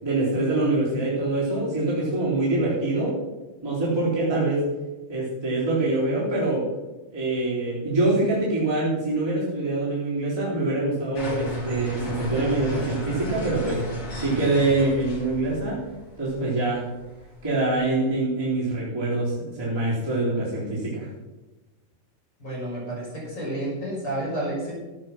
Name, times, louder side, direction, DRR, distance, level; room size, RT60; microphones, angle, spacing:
voice 1, 0.0-3.1 3.6-4.6 5.1-6.6 7.1-13.8 14.2-15.8 16.2-16.8 17.4-21.1, right 2 dB, 5° right, -8 dB, 3.5 m, -24 dB
sound 1, 11.1-17.9, right 1 dB, 40° left, 3.6 m, -34 dB
voice 2, 22.4-24.7, right 1 dB, 20° left, -4 dB, 5.9 m, -30 dB
14.5 x 8.6 x 6.1 m, 1.1 s
omnidirectional pair, 4.5 m